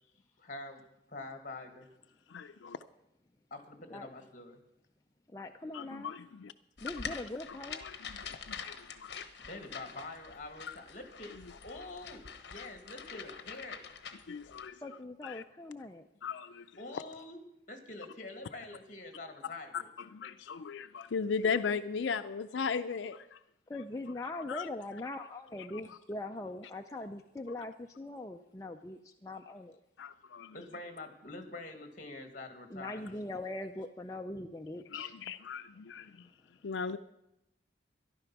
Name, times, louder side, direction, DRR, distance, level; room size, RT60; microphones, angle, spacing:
voice 1, 0.4-0.8 1.1-1.9 3.5-4.6 9.5-11.3 11.6-13.8 16.8-17.4 17.7-19.9 30.5-33.4, left 2 dB, 45° left, 6 dB, 1.8 m, -46 dB
voice 2, 2.3-2.8 5.7-6.5 7.5-9.2 10.7-10.8 11.4-11.6 14.3-14.8 15.2-15.4 16.2-16.7 16.9-17.0 19.4-19.8 20.1-23.4 24.5-24.7 25.9-26.0 30.0-30.6 34.9-36.3 36.6-37.0, left 5 dB, 85° left, 10 dB, 0.4 m, -37 dB
voice 3, 5.3-6.1 6.8-7.8 14.8-16.0 23.7-29.8 32.7-35.1, left 2 dB, 20° left, 3 dB, 0.4 m, -41 dB
sound 1, 6.8-14.7, left 6 dB, 65° left, 1.0 m, -46 dB
13.5 x 11.0 x 6.0 m, 0.87 s
head